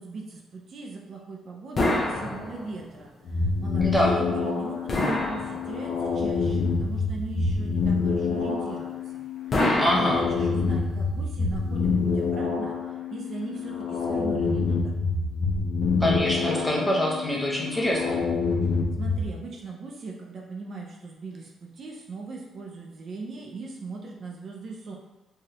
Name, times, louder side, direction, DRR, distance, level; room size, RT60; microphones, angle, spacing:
voice 1, 0.0-9.3 9.5-12.8 13.1-15.0 19.0-24.9, right 3 dB, 55° right, -1 dB, 0.5 m, -39 dB
sound 1, 1.8-2.9 4.9-6.1 9.5-10.8, left 1 dB, 40° left, 0.6 m, -27 dB
sound 2, 3.3-19.3, left 4 dB, 80° left, 0.6 m, -27 dB
voice 2, 3.8-4.2 9.8-10.3 16.0-18.2, equal, 5° left, -3 dB, 0.7 m, -25 dB
3.3 x 2.3 x 2.8 m, 1.1 s
cardioid pair, 90°, 0 cm